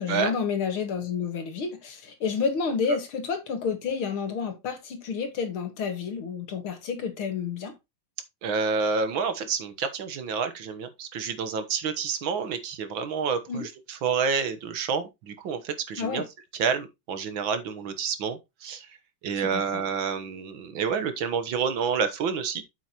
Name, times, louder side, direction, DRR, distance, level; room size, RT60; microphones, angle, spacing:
voice 1, 0.0-7.7 13.5-13.7 16.0-16.2 19.3-19.8, left 6 dB, 80° left, 2.7 m, -30 dB
voice 2, 8.4-16.2 16.6-18.9 19.2-22.6, right 6 dB, 70° right, 1.9 m, -29 dB
8.0 x 7.7 x 3.0 m
omnidirectional pair, 2.3 m